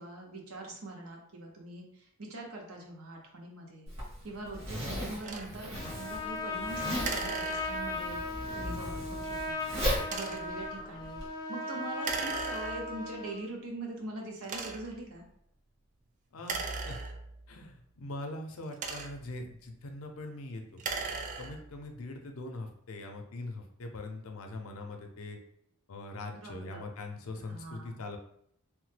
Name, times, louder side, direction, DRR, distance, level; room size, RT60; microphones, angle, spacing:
voice 1, 0.0-3.9 4.2-9.7 10.1-11.2 11.5-15.2 26.3-26.8 27.5-28.0, right 2 dB, 80° right, 0 dB, 0.8 m, -43 dB
Zipper (clothing), 3.9-11.3, equal, 60° right, 1.5 m, -37 dB
sound 1, 5.2-5.5 7.0-8.1 10.0-10.6 12.0-13.0 13.7-13.8 14.4-15.0 16.4-17.5 18.5-19.4 20.7-21.8, right 4 dB, 35° right, 0.3 m, -38 dB
Trumpet, 5.7-13.4, left 2 dB, 20° left, 0.5 m, -37 dB
voice 2, 16.3-17.0 17.5-20.8 21.4-25.4 25.9-28.2, left 2 dB, 75° left, 4 dB, 0.5 m, -42 dB
3.0 x 2.1 x 3.2 m, 0.69 s
head